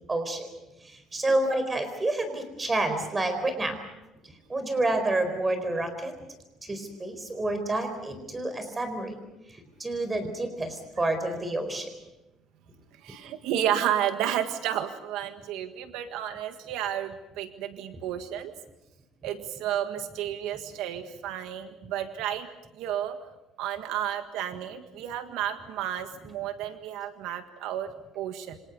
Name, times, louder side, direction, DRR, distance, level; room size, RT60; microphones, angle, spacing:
voice 1, 0.1-0.5 0.8-3.8 4.5-6.1 6.6-9.2 9.8-11.9, right 2 dB, 15° right, 8 dB, 4.5 m, -29 dB
voice 2, 1.2-1.6 12.9-18.5 19.2-22.5 22.7-23.2 23.6-28.6, right 10 dB, 75° right, 7 dB, 1.7 m, -32 dB
28.0 x 25.5 x 5.4 m, 0.98 s
cardioid pair, 145°, 0 cm